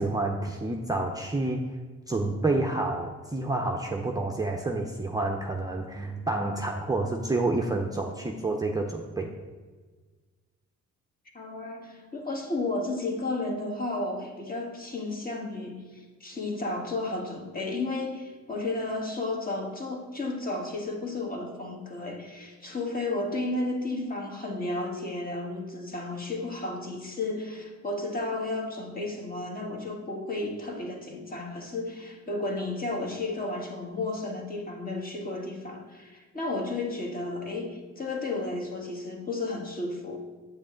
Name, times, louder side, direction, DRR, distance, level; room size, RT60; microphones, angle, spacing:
voice 1, 0.0-1.7 2.1-9.3, right 2 dB, 10° right, 1 dB, 0.6 m, -29 dB
voice 2, 11.3-40.2, left 2 dB, 30° left, 0 dB, 1.6 m, -33 dB
8.3 x 6.4 x 3.8 m, 1.4 s
cardioid pair, 90°, 30 cm